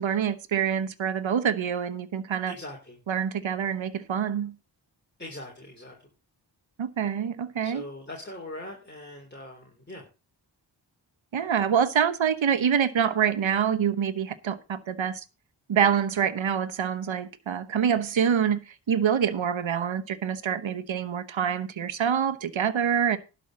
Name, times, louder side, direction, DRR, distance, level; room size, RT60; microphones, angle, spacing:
voice 1, 0.0-2.5 3.1-4.5 6.8-7.8 11.3-15.2 15.7-23.2, right 8 dB, 80° right, 1.1 m, -26 dB
voice 2, 2.5-3.0 5.2-6.0 7.6-10.1, left 1 dB, 25° left, 3.6 m, -41 dB
11.5 x 5.4 x 7.5 m
wide cardioid pair, 65°, 46 cm